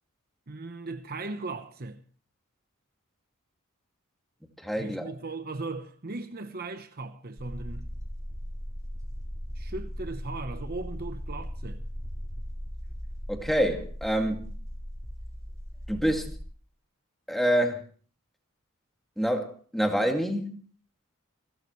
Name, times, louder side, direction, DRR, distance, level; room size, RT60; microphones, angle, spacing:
voice 1, 0.5-2.0 4.8-7.9 9.5-11.8, right 3 dB, 45° right, 1.0 m, -38 dB
voice 2, 4.6-5.1 13.3-14.5 15.9-16.3 17.3-17.8 19.2-20.6, equal, ahead, 2.3 m, -27 dB
sound 1, 7.4-16.5, equal, 15° right, 4.5 m, -38 dB
28.5 x 12.5 x 3.2 m
head